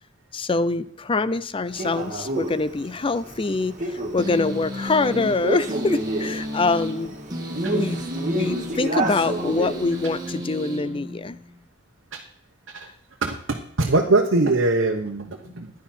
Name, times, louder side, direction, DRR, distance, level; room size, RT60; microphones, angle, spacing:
voice 1, 0.3-7.1 7.7-8.0 8.3-11.4, left 3 dB, 25° left, 16 dB, 0.5 m, -24 dB
Male speech man speaking, 1.8-10.3, right 2 dB, 40° right, 1.9 m, -30 dB
sound 1, 4.2-11.6, equal, 20° right, 1.9 m, -33 dB
voice 2, 13.2-15.7, right 2 dB, 75° right, 1 dB, 1.1 m, -22 dB
15.0 x 10.5 x 4.4 m, 0.67 s
head